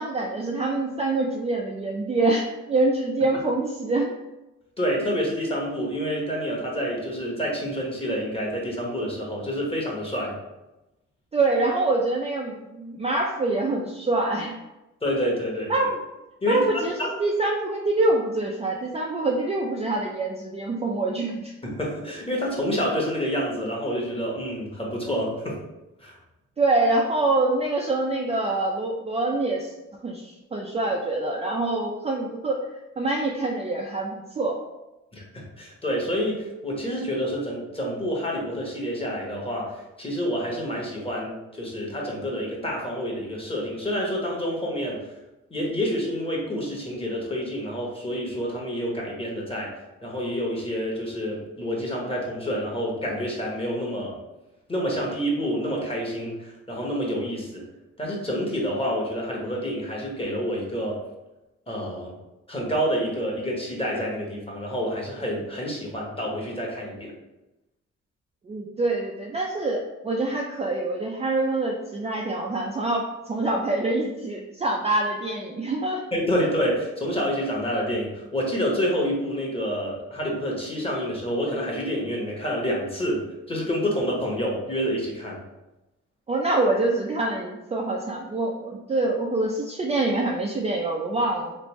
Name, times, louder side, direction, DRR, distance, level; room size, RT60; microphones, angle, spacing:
voice 1, 0.0-4.1 11.3-14.6 15.7-16.0 16.5-21.5 26.6-29.7 30.0-32.6 33.0-34.6 68.5-76.0 86.3-91.6, right 2 dB, 20° right, -1 dB, 0.4 m, -25 dB
voice 2, 4.8-10.3 15.0-15.9 16.4-17.1 21.6-25.6 26.0-26.1 35.1-45.1 45.5-49.7 50.0-54.2 54.7-57.6 58.0-61.0 61.7-62.1 62.5-67.1 76.1-85.4, equal, 20° left, -2 dB, 1.0 m, -28 dB
3.3 x 2.5 x 3.0 m, 0.98 s
cardioid pair, 90°, 30 cm